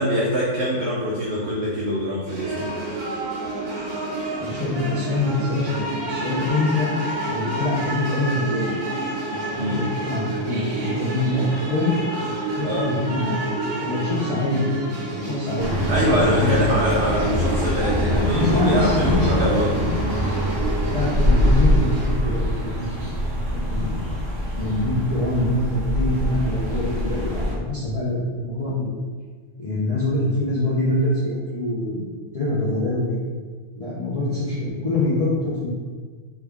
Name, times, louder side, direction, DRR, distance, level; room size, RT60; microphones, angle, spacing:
voice 1, 0.0-3.0 9.6-9.9 12.6-12.9 15.9-19.7, equal, 65° right, -5 dB, 0.7 m, -24 dB
sound 1, 2.3-22.1, right 2 dB, 90° right, 1.4 m, -29 dB
voice 2, 4.4-5.7 6.1-6.9 7.3-8.7 9.3-11.9 12.6-13.4 13.7-14.7 15.1-16.8 17.2-17.4 18.3-19.9 20.9-22.9 23.5-24.2 24.5-28.9 29.6-33.3 33.7-35.7, left 2 dB, 65° left, -9 dB, 0.3 m, -25 dB
sound 2, 15.6-27.5, equal, 35° right, 0.4 m, -23 dB
3.4 x 2.4 x 3.3 m, 1.5 s
omnidirectional pair, 1.6 m